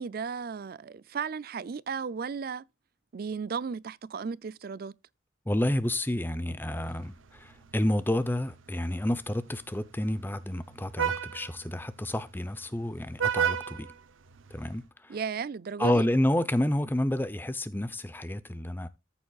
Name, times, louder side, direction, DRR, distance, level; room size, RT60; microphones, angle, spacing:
voice 1, 0.0-2.7 3.1-4.9 15.1-16.1, right 5 dB, 50° right, 0.4 m, -35 dB
voice 2, 5.5-13.9 14.5-15.2 15.8-18.9, left 1 dB, 10° left, 0.7 m, -29 dB
Vehicle horn car horn honking, 6.7-14.8, right 8 dB, 90° right, 0.8 m, -36 dB
14.0 x 7.2 x 2.4 m
head